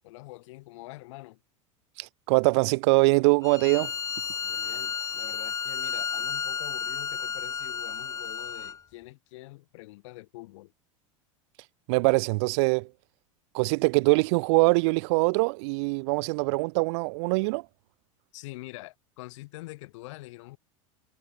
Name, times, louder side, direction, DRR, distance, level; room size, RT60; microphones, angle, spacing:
voice 1, 0.0-1.4 4.4-10.7 18.3-20.6, left 21 dB, 60° left, 1.7 m, -45 dB
voice 2, 2.0-3.9 11.9-12.9 13.5-17.6, right 28 dB, 55° right, 0.4 m, -23 dB
Bowed string instrument, 3.4-8.8, left 6 dB, 20° left, 0.6 m, -32 dB
hypercardioid pair, 85°, 17 cm